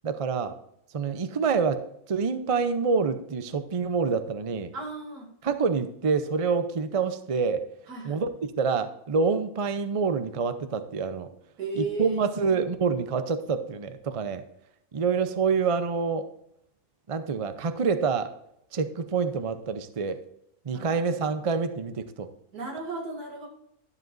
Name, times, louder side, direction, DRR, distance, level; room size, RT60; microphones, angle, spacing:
voice 1, 0.0-0.5 0.9-1.8 2.1-4.7 5.4-7.6 8.0-8.3 8.6-11.3 11.8-14.4 14.9-16.3 17.1-18.3 18.7-20.2 20.6-22.3, right 5 dB, 45° right, 10 dB, 0.4 m, -27 dB
voice 2, 4.7-5.3 7.9-8.2 11.6-12.7 20.7-21.3 22.5-23.5, right 3 dB, 75° right, 0 dB, 2.8 m, -35 dB
12.5 x 7.7 x 2.6 m, 0.75 s
omnidirectional pair, 1.6 m